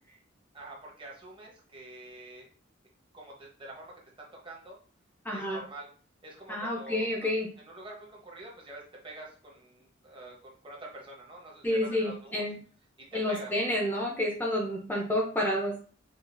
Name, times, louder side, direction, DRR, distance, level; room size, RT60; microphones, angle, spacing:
voice 1, 0.5-2.5 3.1-4.8 5.3-5.9 6.2-7.3 7.6-12.4 13.1-13.5 14.9-15.0, right 2 dB, 25° right, -2 dB, 1.0 m, -46 dB
voice 2, 5.2-5.6 6.5-7.5 11.6-12.6 13.1-15.7, left 1 dB, 10° left, -1 dB, 0.5 m, -29 dB
5.0 x 2.4 x 2.5 m, 0.43 s
head